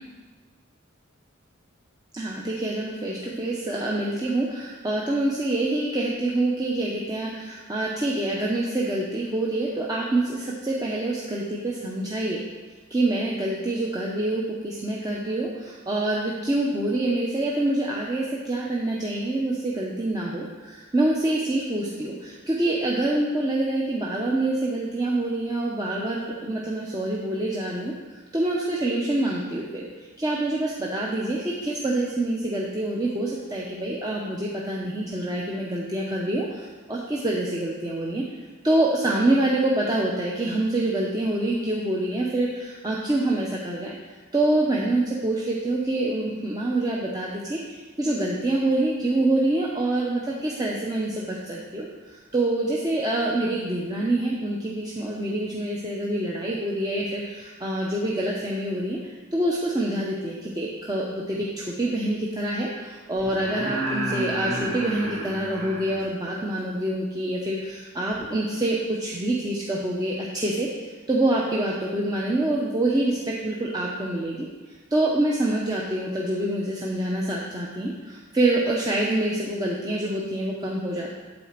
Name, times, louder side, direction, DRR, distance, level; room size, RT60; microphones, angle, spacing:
voice 1, 2.1-12.4 12.9-27.9 28.3-38.2 38.6-43.9 44.3-70.7 71.1-74.5 74.9-81.1, right 1 dB, 20° right, -4 dB, 0.8 m, -26 dB
sound 1, 61.3-61.4 63.2-66.1 68.1-68.2, right 1 dB, 70° right, 3.1 m, -31 dB
8.9 x 4.2 x 7.3 m, 1.4 s
head